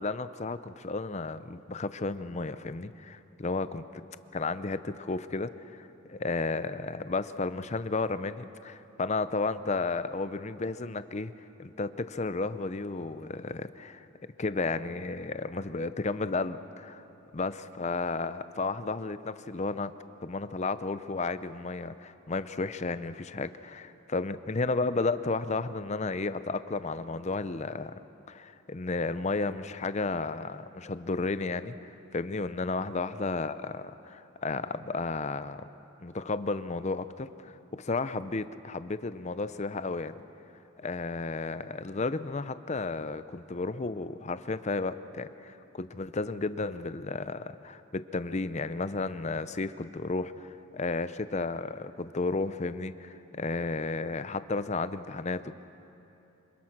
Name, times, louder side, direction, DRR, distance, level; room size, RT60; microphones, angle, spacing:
voice 1, 0.0-3.8 4.3-11.3 11.6-14.1 14.4-17.0 17.3-17.5 17.8-19.9 20.2-27.9 28.3-35.7 36.0-40.1 40.8-55.5, left 3 dB, 35° left, 13 dB, 0.6 m, -33 dB
26.0 x 22.5 x 6.0 m, 3.0 s
head